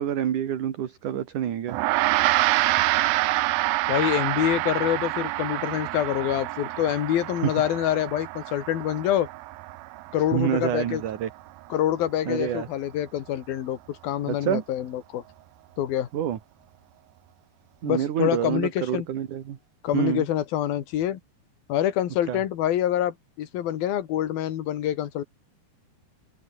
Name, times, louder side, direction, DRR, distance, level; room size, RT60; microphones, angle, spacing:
voice 1, 0.0-1.8 7.4-7.5 10.3-11.3 12.2-12.7 14.3-14.6 16.1-16.4 17.8-19.6 19.9-20.3 22.3-22.4, right 10 dB, 55° right, 3.1 m, -27 dB
Gong, 1.7-11.3, right 19 dB, 80° right, 2.2 m, -27 dB
voice 2, 3.9-9.3 10.1-11.0 11.7-15.2 15.8-16.1 17.8-19.1 19.8-21.2 21.7-25.2, left 11 dB, 70° left, 3.5 m, -26 dB
open air
omnidirectional pair, 4.6 m